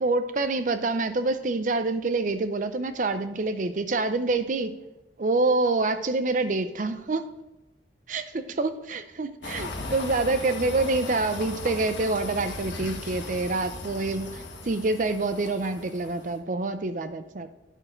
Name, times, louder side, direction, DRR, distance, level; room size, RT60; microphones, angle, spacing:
voice 1, 0.0-4.7 5.2-7.3 8.1-17.5, right 3 dB, 45° right, 10 dB, 0.5 m, -27 dB
sound 1, 9.4-16.4, left 2 dB, 85° left, 1.4 m, -37 dB
9.0 x 6.2 x 3.8 m, 0.97 s
head